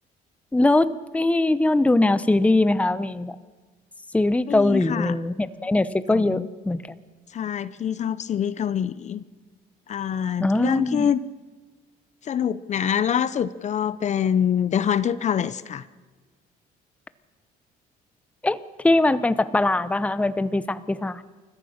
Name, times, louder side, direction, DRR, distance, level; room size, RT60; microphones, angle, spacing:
voice 1, 0.5-3.4 4.1-6.8 10.4-11.1 18.4-21.3, left 2 dB, 10° left, 15 dB, 0.7 m, -21 dB
voice 2, 4.5-5.2 6.1-6.5 7.3-9.2 9.9-11.2 12.2-15.9, left 8 dB, 45° left, 17 dB, 0.7 m, -25 dB
29.5 x 14.5 x 6.6 m, 1.4 s
cardioid pair, 110°, 17 cm